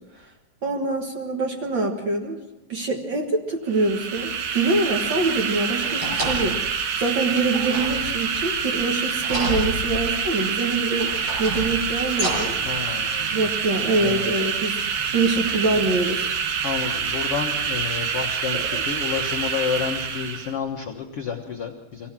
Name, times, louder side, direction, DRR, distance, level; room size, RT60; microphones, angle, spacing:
voice 1, 0.6-2.4 2.7-11.1 11.4-12.6 13.3-16.4 18.5-18.8, right 3 dB, 80° right, 1 dB, 1.0 m, -25 dB
sound 1, 3.7-20.6, right 6 dB, 60° right, 2.1 m, -27 dB
sound 2, 5.8-6.7 7.5-8.5 9.2-10.3 11.0-12.6 13.4-13.5, left 1 dB, 35° right, 8.3 m, -30 dB
voice 2, 12.6-13.4 13.9-14.3 16.6-22.1, left 7 dB, 90° left, 1 dB, 1.2 m, -30 dB
24.5 x 17.5 x 7.4 m, 0.98 s
omnidirectional pair, 4.8 m